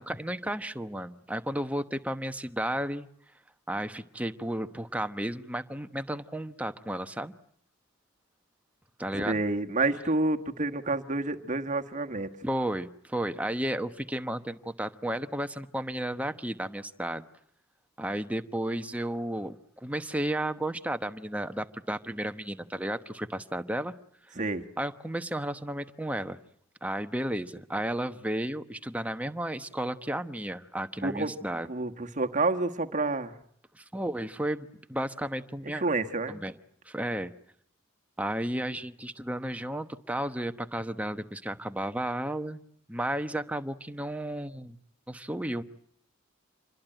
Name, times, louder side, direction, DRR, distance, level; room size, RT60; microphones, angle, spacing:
voice 1, 0.0-3.1 3.7-7.3 9.0-9.4 12.4-17.2 18.0-23.9 24.8-26.4 26.8-31.7 33.7-35.8 36.3-36.6 36.8-37.3 38.2-42.6 42.9-44.8 45.1-45.6, right 1 dB, 5° right, 9 dB, 1.0 m, -33 dB
voice 2, 9.1-12.3 24.4-24.6 31.0-31.3 31.7-33.3 35.7-36.4, right 2 dB, 35° right, 7 dB, 1.5 m, -29 dB
27.5 x 21.5 x 8.9 m, 0.69 s
head